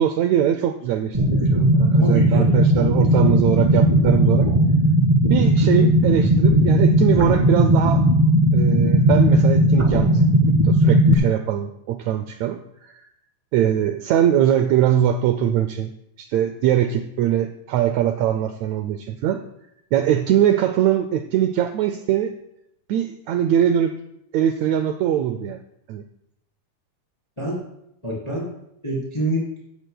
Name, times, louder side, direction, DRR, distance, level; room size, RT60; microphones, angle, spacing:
voice 1, 0.0-4.5 5.3-8.0 8.5-10.2 10.6-13.0 13.5-15.9 16.2-19.4 19.9-22.3 22.9-23.9 24.3-25.6 25.9-26.0, right 10 dB, 80° right, 8 dB, 1.6 m, -22 dB
sound 1, 1.1-11.1, right 1 dB, 20° right, 0.8 m, -17 dB
voice 2, 1.9-2.6 2.9-3.4 27.4-27.6 28.0-28.5 28.8-29.5, right 1 dB, 10° left, -5 dB, 3.5 m, -27 dB
14.5 x 14.0 x 2.3 m, 0.80 s
omnidirectional pair, 3.8 m